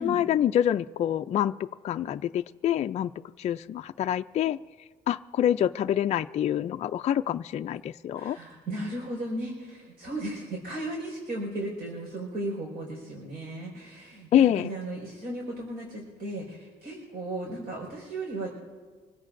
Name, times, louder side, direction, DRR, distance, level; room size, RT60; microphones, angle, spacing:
voice 1, 0.0-1.5 1.8-3.1 3.4-4.6 5.1-8.4 14.3-14.7, left 10 dB, 40° left, 8 dB, 0.4 m, -26 dB
voice 2, 8.1-18.5, right 1 dB, 60° right, -1 dB, 4.9 m, -35 dB
25.5 x 16.0 x 2.6 m, 1.5 s
cardioid pair, 110°, 17 cm